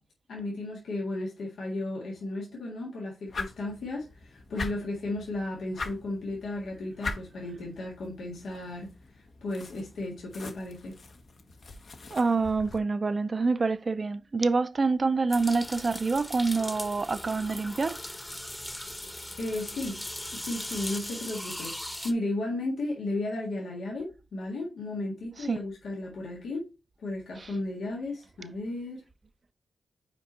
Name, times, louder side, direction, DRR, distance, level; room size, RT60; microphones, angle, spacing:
voice 1, 0.3-8.9 9.4-11.0 19.4-20.0 20.3-21.8 22.0-26.7 27.0-29.0, left 2 dB, 90° left, 1.7 m, -34 dB
sound 1, 3.3-12.8, left 3 dB, 65° left, 1.1 m, -42 dB
voice 2, 12.1-18.0 25.5-25.6 27.4-27.5, right 4 dB, 45° right, 0.5 m, -26 dB
sound 2, 15.3-22.1, left 1 dB, 15° left, 1.0 m, -39 dB
5.9 x 4.7 x 4.0 m
cardioid pair, 65°, 0 cm